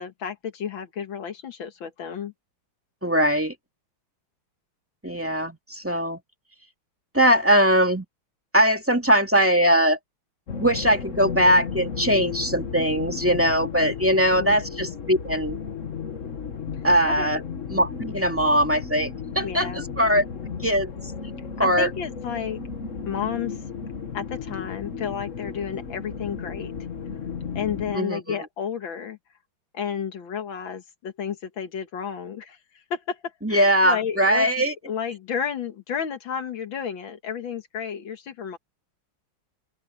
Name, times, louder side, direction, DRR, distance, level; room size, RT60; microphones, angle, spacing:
voice 1, 0.0-2.3 14.4-14.6 17.1-17.4 19.4-19.8 21.6-22.6 23.1-23.6 24.1-26.7 27.6-29.2 29.7-38.6, left 7 dB, 75° left, 2.1 m, -32 dB
voice 2, 3.0-3.5 5.0-6.2 7.1-8.0 8.5-10.0 10.6-15.6 16.8-17.4 17.7-20.3 20.6-21.1 21.6-21.9 27.9-28.4 33.4-34.7, equal, 5° right, 2.2 m, -21 dB
sound 1, 10.5-28.0, left 6 dB, 40° left, 1.6 m, -34 dB
open air
omnidirectional pair, 2.2 m